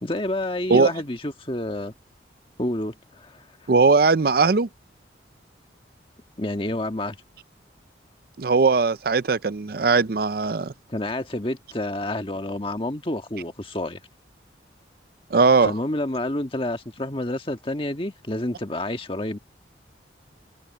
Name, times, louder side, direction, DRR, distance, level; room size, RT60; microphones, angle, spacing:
voice 1, 0.0-1.9 2.6-3.5 6.4-7.2 10.9-14.0 15.6-19.4, left 1 dB, 30° left, 1.6 m, -29 dB
voice 2, 3.7-4.7 8.4-10.7 15.3-15.7, right 4 dB, 55° right, 0.5 m, -19 dB
head